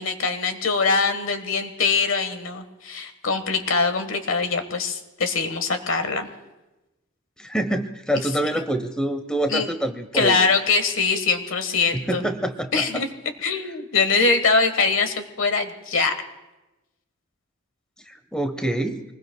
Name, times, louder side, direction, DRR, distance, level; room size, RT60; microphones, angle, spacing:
voice 1, 0.0-6.3 9.5-9.7 10.1-12.2 12.7-13.1 13.4-16.1, left 4 dB, 75° left, 8 dB, 1.3 m, -23 dB
voice 2, 7.4-10.4 11.9-13.0 18.1-19.0, right 1 dB, 5° left, 8 dB, 0.7 m, -26 dB
25.5 x 20.0 x 2.2 m, 1.0 s
head